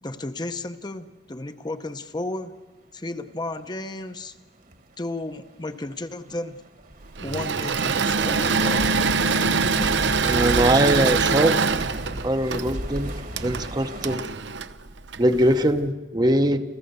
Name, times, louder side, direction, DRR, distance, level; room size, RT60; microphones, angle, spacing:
voice 1, 0.0-2.6 2.9-4.4 5.0-6.6 7.2-8.9 9.3-10.5 11.0-11.1, left 2 dB, 25° left, 8 dB, 0.7 m, -34 dB
sound 1, 4.1-4.2 4.6-4.8 5.2-14.2, right 1 dB, 50° right, 1.6 m, -36 dB
Engine / Mechanisms, 7.2-15.6, right 5 dB, 80° right, 0.8 m, -24 dB
voice 2, 10.2-11.5 12.2-13.1 13.4-14.3 15.2-16.6, right 1 dB, 25° right, 8 dB, 0.8 m, -21 dB
28.0 x 15.5 x 6.8 m, 1.4 s
head